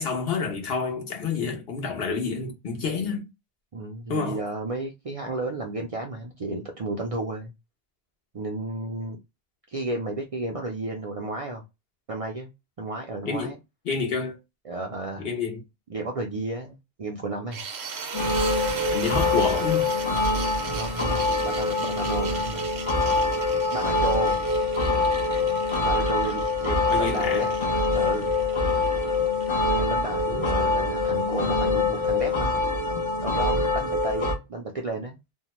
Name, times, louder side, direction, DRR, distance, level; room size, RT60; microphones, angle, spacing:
voice 1, 0.0-3.3 4.1-4.4 13.2-13.5 13.8-14.4 15.2-15.6 18.9-19.9 26.9-27.5 30.3-30.4, left 5 dB, 70° left, 1.0 m, -28 dB
voice 2, 3.7-7.5 8.3-9.2 9.7-11.6 12.1-12.5 12.8-13.6 14.7-15.3 15.9-17.6 20.7-22.6 23.7-24.4 25.8-27.5 27.9-28.4 29.6-32.6 33.2-35.2, right 2 dB, 50° right, 0.4 m, -32 dB
sound 1, 17.5-29.5, right 6 dB, 90° right, 0.9 m, -37 dB
sound 2, 18.1-34.4, left 3 dB, 35° left, 0.5 m, -24 dB
2.7 x 2.1 x 2.9 m
omnidirectional pair, 1.1 m